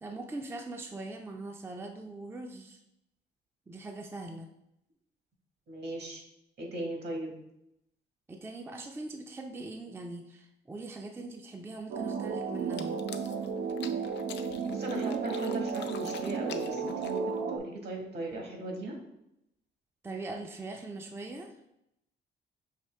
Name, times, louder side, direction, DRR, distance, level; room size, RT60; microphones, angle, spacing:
voice 1, 0.0-2.8 3.7-4.5 8.3-13.0 20.0-21.5, right 2 dB, 10° right, 3 dB, 0.4 m, -41 dB
voice 2, 5.7-6.2 6.6-7.3 14.7-18.9, right 2 dB, 55° right, 1 dB, 1.4 m, -38 dB
sound 1, 11.9-17.6, right 5 dB, 85° right, 0.5 m, -33 dB
sound 2, 12.6-17.4, left 8 dB, 65° left, 0.4 m, -47 dB
5.7 x 2.7 x 3.3 m, 0.82 s
cardioid pair, 90°, 20 cm